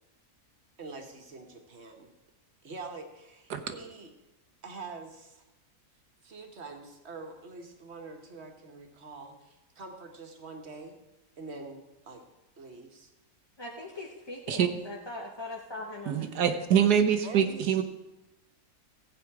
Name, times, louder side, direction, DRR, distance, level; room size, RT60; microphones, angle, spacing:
voice 1, 0.8-2.1 2.6-4.1 4.6-5.4 6.2-10.9 11.4-12.2 12.6-13.1 17.2-17.8, right 3 dB, 45° right, 4 dB, 1.7 m, -45 dB
voice 2, 13.6-16.7, left 2 dB, 20° left, -1 dB, 0.8 m, -41 dB
voice 3, 16.1-17.8, right 8 dB, 90° right, 8 dB, 1.6 m, -25 dB
15.0 x 8.5 x 4.8 m, 0.98 s
omnidirectional pair, 1.6 m